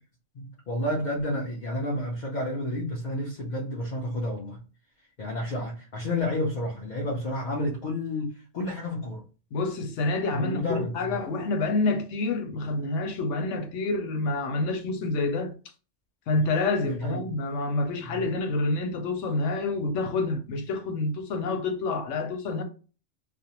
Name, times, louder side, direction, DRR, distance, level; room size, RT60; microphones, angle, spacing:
voice 1, 0.3-4.6 5.2-9.2 10.3-11.2 16.8-17.2 18.0-18.2, left 1 dB, 50° left, 0.6 m, -30 dB
voice 2, 9.5-15.5 16.3-22.6, left 3 dB, 90° left, 0.9 m, -28 dB
2.5 x 2.0 x 2.8 m
omnidirectional pair, 1.2 m